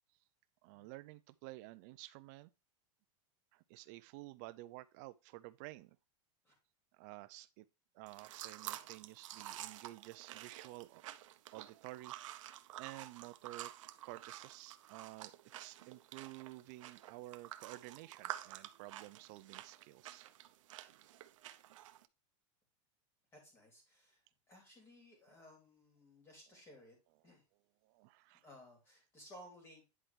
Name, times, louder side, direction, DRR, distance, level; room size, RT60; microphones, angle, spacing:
voice 1, 0.6-2.5 3.5-6.0 6.9-7.7 7.9-11.0 11.5-13.7 14.0-20.3 27.8-28.5, right 19 dB, 35° right, 0.4 m, -52 dB
sound 1, 8.1-22.1, right 13 dB, 80° right, 0.7 m, -50 dB
voice 2, 23.3-24.2 24.5-27.0 27.2-27.4 28.3-29.9, left 1 dB, 15° left, 3.0 m, -59 dB
10.0 x 4.4 x 3.2 m
supercardioid pair, 175°, 16 cm